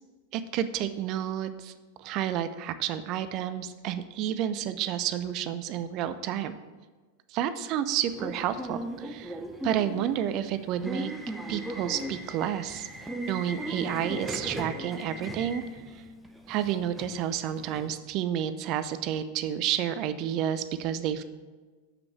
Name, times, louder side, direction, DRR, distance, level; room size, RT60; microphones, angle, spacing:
voice 1, 0.3-1.7 2.0-6.6 7.3-9.4 9.6-11.1 11.5-12.9 13.3-15.6 16.5-21.2, right 10 dB, 40° right, 12 dB, 0.5 m, -30 dB
Subway metro underground / Alarm, 8.1-17.9, right 1 dB, 5° right, 0.8 m, -38 dB
6.8 x 5.9 x 6.2 m, 1.4 s
figure-of-eight pair, 90°, 0 cm